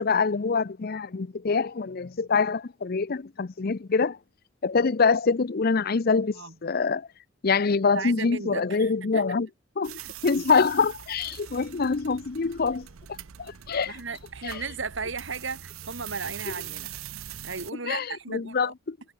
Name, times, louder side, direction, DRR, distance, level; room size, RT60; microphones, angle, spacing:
voice 1, 0.0-4.2 4.6-7.1 7.4-9.5 9.8-13.9 14.4-14.6 17.9-19.0, left 4 dB, 45° left, 0.5 m, -25 dB
voice 2, 7.9-9.2 10.0-10.1 13.9-16.9 17.4-18.7, right 4 dB, 60° right, 2.2 m, -35 dB
sound 1, 9.8-17.7, right 10 dB, 85° right, 0.7 m, -42 dB
head